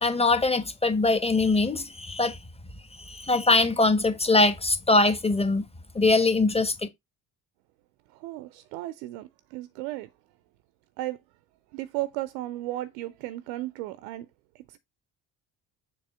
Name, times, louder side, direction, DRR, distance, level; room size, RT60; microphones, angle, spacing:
voice 1, 0.0-2.4 3.0-5.7 5.9-6.9, left 3 dB, 10° left, 1.2 m, -22 dB
voice 2, 8.1-10.1 11.0-11.2 11.7-14.3 14.5-14.8, right 16 dB, 70° right, 0.7 m, -35 dB
6.8 x 2.9 x 5.5 m
figure-of-eight pair, 45°, 50 cm